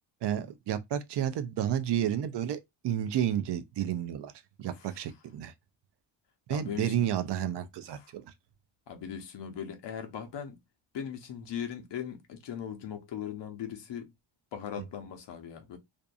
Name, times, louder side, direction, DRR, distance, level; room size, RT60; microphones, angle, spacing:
voice 1, 0.2-4.3 4.6-5.5 6.5-8.2, right 10 dB, 60° right, 0.5 m, -31 dB
voice 2, 4.6-5.0 6.5-7.1 7.9-8.1 8.9-10.6 10.9-14.1 14.5-15.8, left 8 dB, 60° left, 0.8 m, -39 dB
2.5 x 2.5 x 2.3 m
cardioid pair, 105°, 49 cm